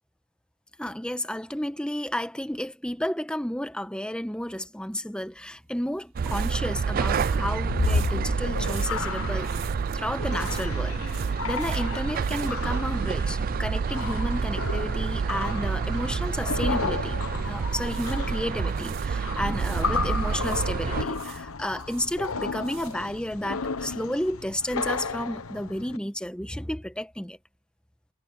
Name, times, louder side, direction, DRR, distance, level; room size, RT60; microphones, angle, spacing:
voice 1, 0.8-9.5 9.9-17.2 17.4-27.4, left 1 dB, 5° left, 1.1 m, -32 dB
sound 1, 5.3-13.4 13.6-13.8 17.6-19.9 20.3-23.1, right 8 dB, 65° right, 4.8 m, -46 dB
sound 2, 6.1-21.0, right 5 dB, 40° right, 0.3 m, -28 dB
sound 3, 7.2-26.0, left 4 dB, 90° left, 1.1 m, -33 dB
head